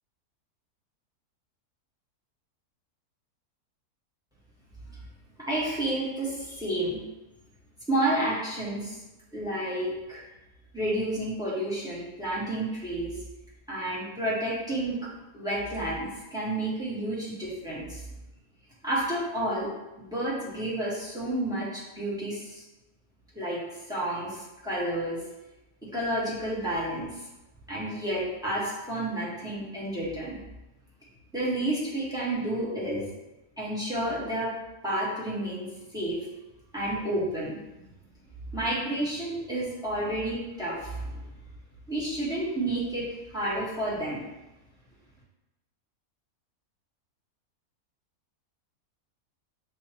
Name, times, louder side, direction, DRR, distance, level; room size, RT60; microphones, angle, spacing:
voice 1, 5.4-7.0 7.9-9.0 9.3-10.2 10.7-13.1 13.7-18.1 18.8-19.7 20.0-22.6 23.3-25.2 25.8-27.3 27.7-30.4 31.3-33.1 33.6-34.5 34.8-36.3 36.7-37.6 38.5-41.2 41.9-44.2, right 1 dB, 5° right, -8 dB, 1.3 m, -30 dB
6.7 x 2.7 x 2.9 m, 1.0 s
omnidirectional pair, 1.6 m